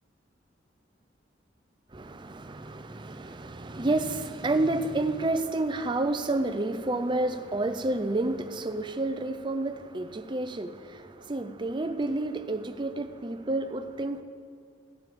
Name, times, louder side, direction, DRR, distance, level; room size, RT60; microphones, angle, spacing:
voice 1, 1.9-14.2, right 2 dB, 25° right, 9 dB, 0.5 m, -30 dB
15.0 x 7.0 x 5.3 m, 2.2 s
head